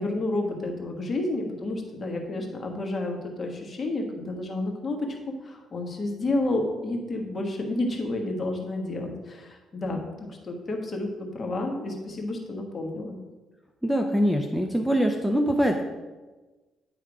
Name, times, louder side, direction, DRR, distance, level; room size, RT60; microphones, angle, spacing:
voice 1, 0.0-5.0 5.4-13.2, left 2 dB, 35° left, 1 dB, 1.4 m, -30 dB
voice 2, 13.8-15.8, equal, ahead, 3 dB, 0.6 m, -23 dB
9.7 x 3.5 x 4.8 m, 1.2 s
cardioid pair, 90°, 0 cm